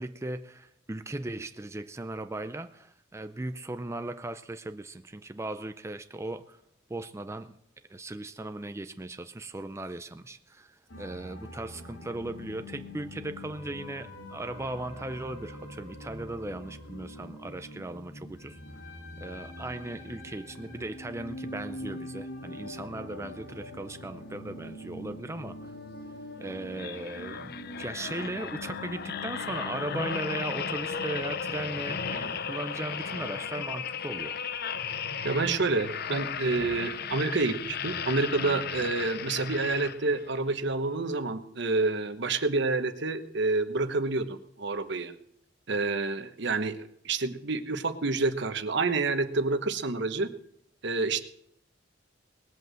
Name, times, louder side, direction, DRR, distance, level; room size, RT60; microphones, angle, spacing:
voice 1, 0.0-6.6 6.9-7.6 7.9-18.6 18.9-25.7 26.4-34.4, right 2 dB, 15° right, 0.5 m, -38 dB
sound 1, 10.9-30.0, left 1 dB, 80° left, 3.2 m, -44 dB
sound 2, 26.7-40.3 40.9-41.1, left 6 dB, 55° left, 0.7 m, -35 dB
voice 2, 35.2-45.1 45.7-50.3 50.8-51.2, right 3 dB, 65° right, 1.1 m, -28 dB
19.0 x 8.1 x 7.6 m
head